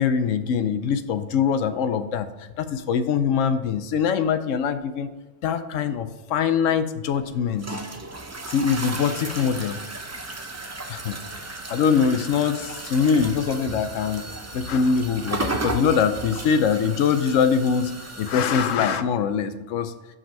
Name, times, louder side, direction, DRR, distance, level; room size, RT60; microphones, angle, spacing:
voice 1, 0.0-2.3 2.6-5.1 5.4-7.7 8.5-9.8 10.9-11.2 11.7-14.2 14.5-17.9 18.2-19.9, left 6 dB, 85° left, 11 dB, 1.0 m, -23 dB
sound 1, 7.0-18.8, right 2 dB, 25° right, 0.3 m, -34 dB
5.9 x 5.4 x 5.4 m, 1.1 s
omnidirectional pair, 1.3 m